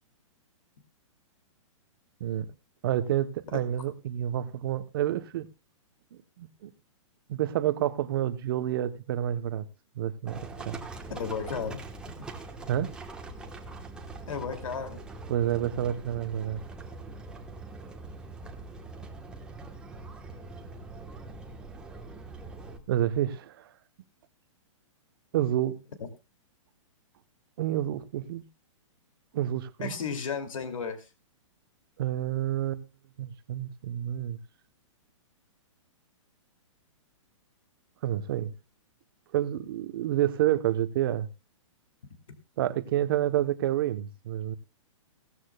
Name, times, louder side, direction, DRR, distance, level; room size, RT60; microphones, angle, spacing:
voice 1, 2.2-2.5 2.8-5.5 6.1-6.7 7.3-9.6 10.0-10.8 12.7-12.9 15.3-16.6 22.9-23.7 25.3-25.8 27.6-28.4 29.3-29.9 32.0-32.8 33.2-34.4 38.0-38.5 39.3-41.3 42.6-44.5, right 12 dB, 45° right, 0.9 m, -29 dB
Livestock farm animals working animals, 10.3-22.8, right 3 dB, 5° right, 1.2 m, -43 dB
voice 2, 11.1-11.8 14.3-15.0 26.0-26.1 29.8-31.1, left 6 dB, 85° left, 2.6 m, -33 dB
17.0 x 13.0 x 2.3 m
hypercardioid pair, 160°, 17 cm